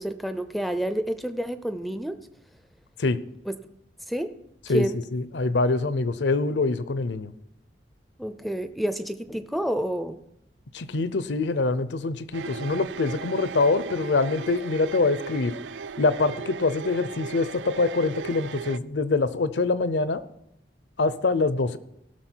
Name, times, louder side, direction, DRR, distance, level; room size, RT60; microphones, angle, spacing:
voice 1, 0.0-2.3 3.5-3.6 4.1-4.4 4.7-5.0 8.2-10.2, right 1 dB, ahead, 10 dB, 0.4 m, -29 dB
voice 2, 5.1-7.3 10.7-15.5 16.0-20.2 21.0-21.8, left 3 dB, 75° left, 14 dB, 0.6 m, -24 dB
sound 1, 12.3-18.8, right 5 dB, 80° right, 0.4 m, -37 dB
17.0 x 6.4 x 4.5 m, 0.80 s
head